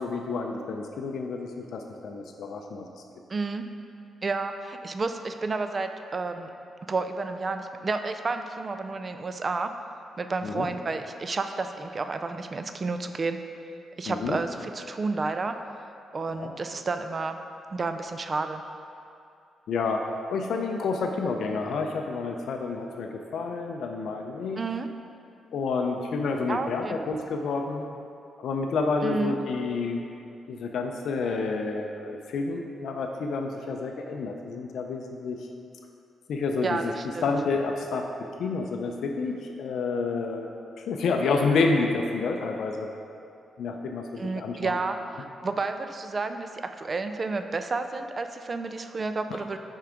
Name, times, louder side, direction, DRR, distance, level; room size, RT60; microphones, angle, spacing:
voice 1, 0.0-2.9 10.4-10.7 14.1-14.4 16.3-16.5 19.7-24.6 25.5-27.8 28.4-30.0 30.5-35.5 36.3-36.9 37.2-38.1 38.4-40.5 40.8-42.9 43.6-44.8 49.3-49.5, left 4 dB, 75° left, 3 dB, 0.4 m, -29 dB
voice 2, 3.3-3.6 4.2-6.5 6.9-9.7 10.2-13.4 14.0-15.6 16.1-17.4 17.7-18.6 24.6-24.9 26.5-27.0 29.0-29.4 36.6-37.2 44.2-49.6, right 3 dB, 30° right, 8 dB, 0.3 m, -31 dB
5.9 x 4.5 x 5.0 m, 2.5 s
cardioid pair, 135°, 0 cm